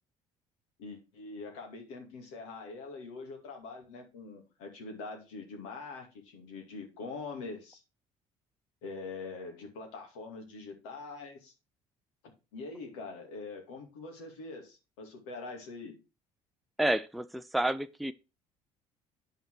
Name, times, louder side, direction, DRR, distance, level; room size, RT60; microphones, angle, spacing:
voice 1, 0.8-7.8 8.8-11.5 12.5-16.0, left 3 dB, 75° left, 2.3 m, -43 dB
voice 2, 16.8-18.1, right 1 dB, ahead, 0.5 m, -30 dB
9.1 x 5.6 x 4.7 m
hypercardioid pair, 55°, 16 cm